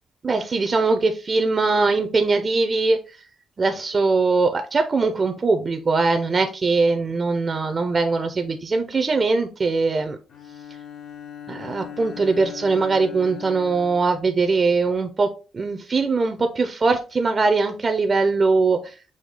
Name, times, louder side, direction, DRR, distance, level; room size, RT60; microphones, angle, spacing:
voice 1, 0.2-3.0 3.6-10.2 11.5-15.3 15.5-18.9, right 3 dB, 35° right, 6 dB, 0.5 m, -21 dB
Bowed string instrument, 10.3-14.9, left 9 dB, 70° left, 0.9 m, -39 dB
4.8 x 2.3 x 3.6 m, 0.33 s
cardioid pair, 90°, 0 cm